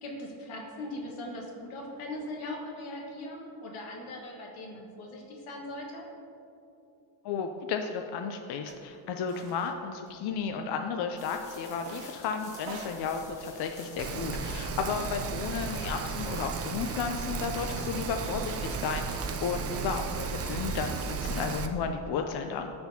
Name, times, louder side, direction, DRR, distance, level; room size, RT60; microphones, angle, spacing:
voice 1, 0.0-6.0, left 1 dB, 85° left, -1 dB, 1.6 m, -40 dB
voice 2, 7.2-22.7, left 6 dB, 55° left, 5 dB, 0.5 m, -33 dB
sound 1, 8.7-8.8 9.3-9.7 10.1-10.8 11.8-12.2 12.6-14.4, right 4 dB, 90° right, 1.0 m, -46 dB
sound 2, 11.2-21.7, left 1 dB, 30° left, 1.6 m, -51 dB
Rain, 14.0-21.7, right 5 dB, 35° right, 0.4 m, -34 dB
13.0 x 4.4 x 2.8 m, 2.8 s
cardioid pair, 145°, 49 cm